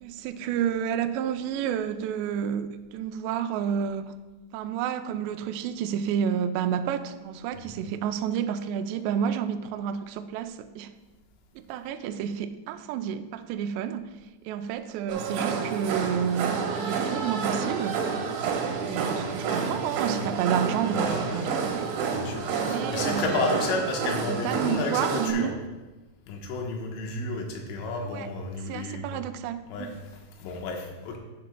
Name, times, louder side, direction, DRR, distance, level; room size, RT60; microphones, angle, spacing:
voice 1, 0.0-4.2 4.5-10.9 11.6-14.1 14.5-18.1 18.8-21.9 22.6-23.6 24.2-25.6 28.0-28.3 28.7-29.9, right 8 dB, 90° right, 8 dB, 2.4 m, -30 dB
sound 1, 15.1-25.3, right 5 dB, 70° right, 3.0 m, -29 dB
voice 2, 20.9-21.5 22.1-25.5 26.3-29.2 29.7-31.2, left 3 dB, 85° left, 1 dB, 3.7 m, -32 dB
11.5 x 10.5 x 2.2 m, 1.1 s
omnidirectional pair, 5.5 m